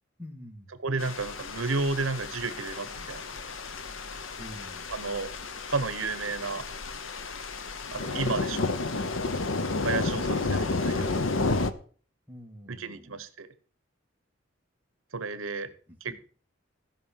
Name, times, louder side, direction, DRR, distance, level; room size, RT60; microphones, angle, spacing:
voice 1, 0.2-0.7 4.4-4.9 12.3-13.2 15.9-16.2, equal, 10° right, 0 dB, 2.1 m, -46 dB
voice 2, 0.8-3.5 4.9-5.3 5.7-6.7 7.9-8.8 9.8-11.3 12.7-13.5 15.1-15.7 16.0-16.2, right 4 dB, 80° right, 12 dB, 1.0 m, -32 dB
sound 1, 1.0-11.7, left 3 dB, 70° left, 0.9 m, -31 dB
14.5 x 5.5 x 7.5 m, 0.43 s
head